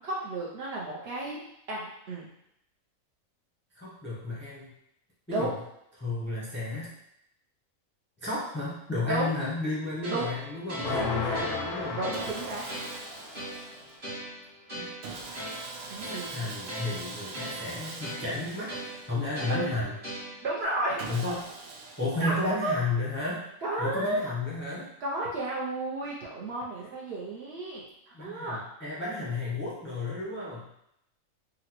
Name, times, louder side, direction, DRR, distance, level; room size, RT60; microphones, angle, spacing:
voice 1, 0.0-1.4 1.7-2.3 5.3-5.5 9.1-9.3 10.1-10.3 10.8-11.5 12.0-12.7 15.9-16.5 19.5-19.8 20.4-21.0 22.2-22.4 22.6-22.8 23.6-24.2 25.0-27.9 28.2-28.6, right 2 dB, 60° right, -5 dB, 0.8 m, -32 dB
voice 2, 3.8-4.7 5.3-5.5 6.0-6.9 8.2-12.0 14.8-14.9 16.1-18.7 19.1-19.9 21.1-21.4 22.0-23.5 23.8-24.9 28.1-30.7, left 2 dB, 10° left, -7 dB, 0.5 m, -32 dB
sound 1, 10.0-20.6, equal, 35° right, 1.1 m, -41 dB
sound 2, 10.8-13.6, left 4 dB, 65° left, 0.8 m, -35 dB
Sawing, 12.1-14.2 15.0-19.6 21.0-22.8, right 3 dB, 80° right, 1.0 m, -43 dB
3.7 x 2.1 x 2.9 m, 0.79 s
omnidirectional pair, 1.4 m